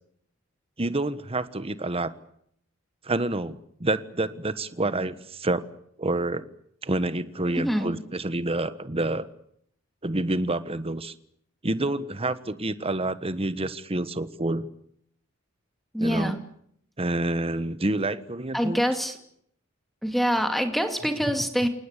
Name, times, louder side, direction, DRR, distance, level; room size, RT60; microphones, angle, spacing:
voice 1, 0.8-2.1 3.0-5.6 6.0-6.5 6.8-9.3 10.0-11.1 11.6-14.7 16.0-16.3 17.0-18.8, right 2 dB, 30° right, 13 dB, 1.3 m, -28 dB
voice 2, 7.6-7.9 15.9-16.4 18.5-19.2 20.0-21.7, equal, ahead, 6 dB, 2.5 m, -25 dB
28.5 x 19.0 x 8.3 m, 0.69 s
head